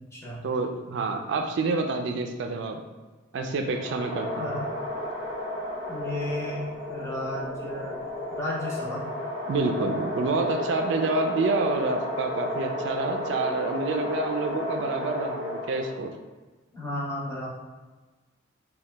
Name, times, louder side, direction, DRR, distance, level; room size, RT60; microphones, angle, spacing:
voice 1, 0.4-2.8 3.3-4.5 9.5-16.1, right 3 dB, 60° right, 4 dB, 0.3 m, -28 dB
sound 1, 3.6-16.1, left 1 dB, 65° left, 1.0 m, -33 dB
voice 2, 5.9-6.6 6.9-8.0 8.3-9.0 16.7-17.5, left 1 dB, 15° left, -6 dB, 0.8 m, -33 dB
2.8 x 2.3 x 3.3 m, 1.3 s
head